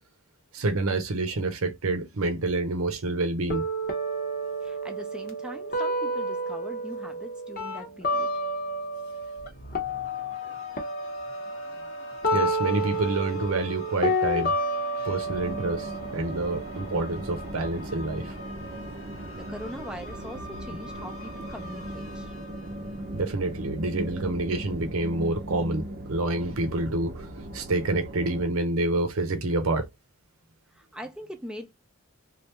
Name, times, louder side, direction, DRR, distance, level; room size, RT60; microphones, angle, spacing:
voice 1, 0.5-3.6 12.3-14.6 15.0-18.4 23.1-29.9, right 2 dB, 80° right, 0.7 m, -28 dB
sound 1, 3.5-9.5 9.7-17.5, equal, 45° left, 0.9 m, -30 dB
voice 2, 4.6-8.3 19.3-22.3 30.8-31.7, equal, 5° right, 0.6 m, -41 dB
sound 2, 9.4-23.7, left 2 dB, 75° left, 1.2 m, -45 dB
sound 3, 15.2-28.5, right 1 dB, 45° right, 0.7 m, -38 dB
3.3 x 2.5 x 3.0 m
head